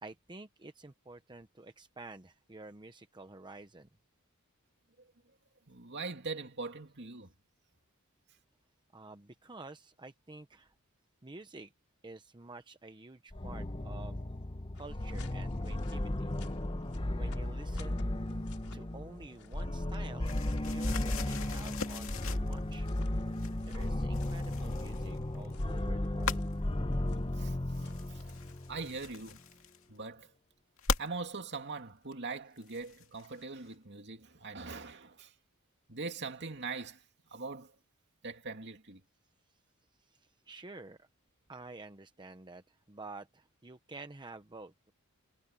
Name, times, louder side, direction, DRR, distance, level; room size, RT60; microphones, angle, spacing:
voice 1, 0.0-3.9 8.9-10.7 11.2-11.7 12.0-14.2 14.7-16.3 17.2-18.0 18.7-22.9 23.7-26.5 39.5-39.6 40.0-41.1 41.5-44.9, right 2 dB, 20° right, 0.8 m, -50 dB
voice 2, 5.7-7.3 27.3-28.2 28.7-29.4 29.9-30.3 31.0-35.3 35.9-37.0 37.3-37.7 38.2-39.0, right 4 dB, 50° right, 2.6 m, -42 dB
sound 1, 13.3-29.0, left 1 dB, 25° left, 0.9 m, -35 dB
sound 2, 14.7-28.6, left 8 dB, 80° left, 4.7 m, -62 dB
sound 3, 20.2-23.0 23.3-25.5 26.2-26.5 27.7-30.1 30.8-31.1 32.1-32.2 32.6-33.4, left 5 dB, 65° left, 2.5 m, -40 dB
head